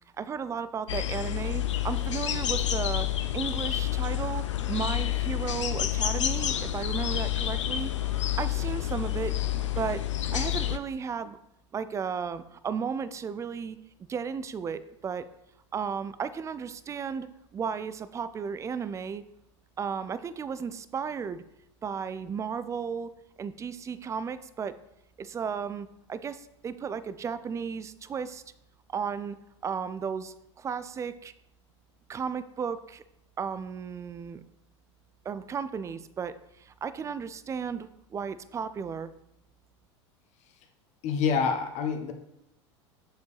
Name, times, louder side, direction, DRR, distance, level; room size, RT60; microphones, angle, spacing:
voice 1, 0.2-3.1 3.3-7.9 8.4-9.3 9.8-10.0 10.3-11.4 11.7-13.8 14.1-15.3 15.7-17.3 17.5-19.2 19.8-21.4 21.8-23.1 23.4-24.7 25.2-28.4 28.9-29.4 29.6-31.3 32.1-33.0 33.4-34.4 35.2-39.1, right 6 dB, 20° right, 13 dB, 0.4 m, -34 dB
sound 1, 0.9-10.8, left 12 dB, 85° left, 0.5 m, -29 dB
voice 2, 41.0-42.1, left 6 dB, 45° left, 5 dB, 1.1 m, -27 dB
6.7 x 4.7 x 3.3 m, 0.83 s
hypercardioid pair, 90°, 15 cm